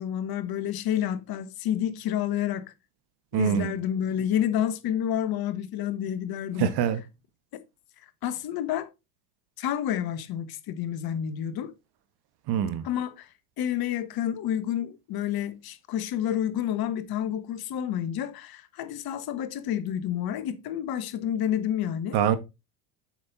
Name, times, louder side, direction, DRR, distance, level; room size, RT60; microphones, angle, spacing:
voice 1, 0.0-2.7 3.3-6.7 8.2-8.9 9.6-11.7 12.8-13.3 13.6-22.2, left 10 dB, 50° left, 1.4 m, -29 dB
voice 2, 3.3-3.7 6.6-7.0 12.5-12.9 22.1-22.4, right 9 dB, 50° right, 1.4 m, -24 dB
7.5 x 6.2 x 4.0 m
hypercardioid pair, 75°, 49 cm